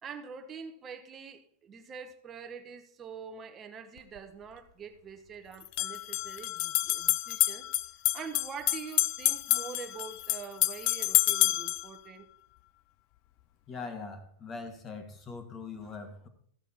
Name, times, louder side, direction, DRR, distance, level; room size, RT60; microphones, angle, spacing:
voice 1, 0.0-7.7 8.1-12.3, right 6 dB, 20° right, 6 dB, 1.2 m, -45 dB
sound 1, 4.0-4.1 5.6-11.9, left 17 dB, 45° left, 0.4 m, -28 dB
voice 2, 13.7-16.3, left 4 dB, 25° left, 6 dB, 1.8 m, -42 dB
14.5 x 6.3 x 4.4 m, 0.64 s
supercardioid pair, 145°, 0 cm